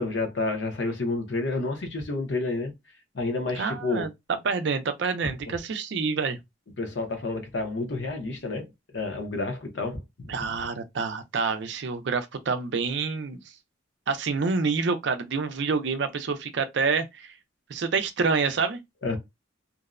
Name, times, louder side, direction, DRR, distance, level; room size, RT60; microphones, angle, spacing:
voice 1, 0.0-2.7 3.1-4.1 5.2-5.3 6.8-10.6 19.0-19.2, left 3 dB, 65° left, 0.7 m, -30 dB
voice 2, 3.5-4.1 4.4-6.4 10.3-13.4 14.1-17.3 17.7-18.8, right 4 dB, 65° right, 0.4 m, -27 dB
2.6 x 2.0 x 2.4 m
head